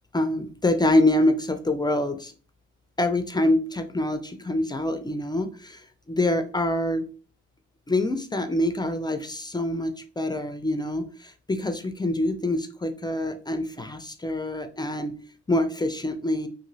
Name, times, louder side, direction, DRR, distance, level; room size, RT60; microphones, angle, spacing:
voice 1, 0.1-2.3 3.0-7.1 7.9-15.1 15.5-16.5, left 1 dB, 15° left, 8 dB, 0.3 m, -25 dB
2.9 x 2.7 x 2.7 m, 0.38 s
cardioid pair, 90°, 30 cm